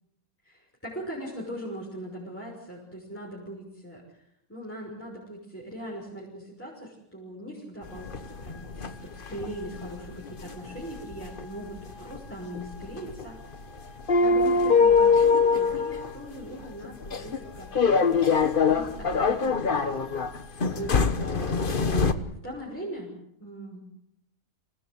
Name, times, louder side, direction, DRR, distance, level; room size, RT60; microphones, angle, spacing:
voice 1, 0.4-4.2 4.5-13.5 14.2-18.3 18.7-20.1 20.7-23.8, equal, 10° left, -4 dB, 6.0 m, -40 dB
sound 1, 7.8-22.1, left 5 dB, 40° left, 1.3 m, -24 dB
27.0 x 17.5 x 8.2 m, 0.76 s
omnidirectional pair, 1.5 m